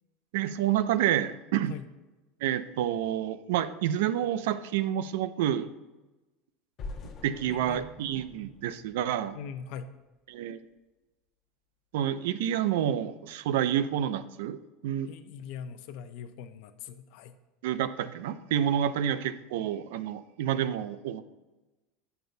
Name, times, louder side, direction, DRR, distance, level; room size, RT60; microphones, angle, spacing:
voice 1, 0.3-1.8 2.4-5.7 7.2-9.4 10.3-10.6 11.9-14.6 14.8-15.1 17.6-21.2, right 10 dB, 85° right, 13 dB, 0.4 m, -29 dB
sound 1, 6.8-9.8, left 3 dB, 40° left, 0.8 m, -45 dB
voice 2, 7.5-7.9 9.3-9.9 15.1-17.3 18.8-18.9, left 7 dB, 65° left, 9 dB, 0.5 m, -42 dB
7.7 x 6.8 x 2.6 m, 1.1 s
supercardioid pair, 130°, 0 cm